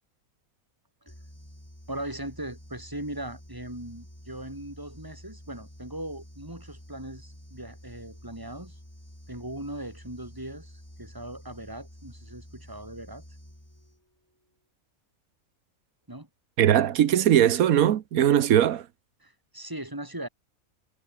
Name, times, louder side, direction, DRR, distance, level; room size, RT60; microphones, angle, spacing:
sound 1, 1.1-14.2, equal, 10° left, 6.3 m, -49 dB
voice 1, 1.9-8.8 9.3-13.2 16.1-16.3 19.2-20.3, right 1 dB, 15° right, 4.9 m, -39 dB
voice 2, 16.6-18.9, right 10 dB, 80° right, 1.3 m, -20 dB
omnidirectional pair, 1.5 m